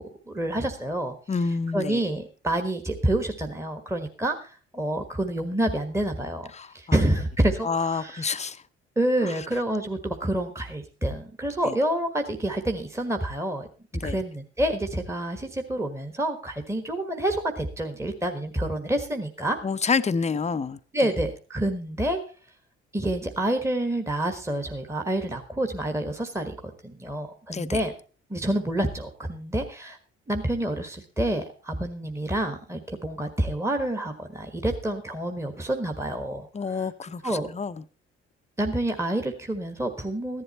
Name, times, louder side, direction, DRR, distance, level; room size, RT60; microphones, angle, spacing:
voice 1, 0.0-1.1 1.7-8.2 8.9-13.7 14.0-19.6 20.9-22.2 22.9-27.9 28.3-30.0 30.3-36.9 37.2-37.5 38.6-40.4, right 1 dB, 10° right, 1.5 m, -28 dB
voice 2, 1.3-2.1 6.5-7.0 7.6-8.6 9.2-9.3 11.6-11.7 13.9-14.2 19.6-20.8 27.5-27.8 36.5-37.8, left 5 dB, 20° left, 0.7 m, -28 dB
14.5 x 11.0 x 4.2 m
figure-of-eight pair, 45°, 32 cm